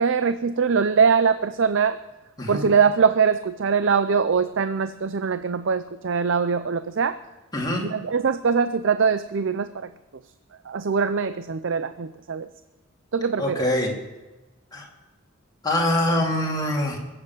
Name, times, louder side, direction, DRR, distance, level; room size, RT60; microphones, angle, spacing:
voice 1, 0.0-2.0 2.5-7.2 7.9-9.9 10.7-12.5 13.1-13.6, right 5 dB, 60° right, 12 dB, 0.5 m, -22 dB
voice 2, 7.5-7.9 13.4-13.9 14.7-14.9 15.6-17.0, left 1 dB, 20° left, -2 dB, 3.0 m, -24 dB
21.5 x 7.9 x 7.3 m, 1.1 s
head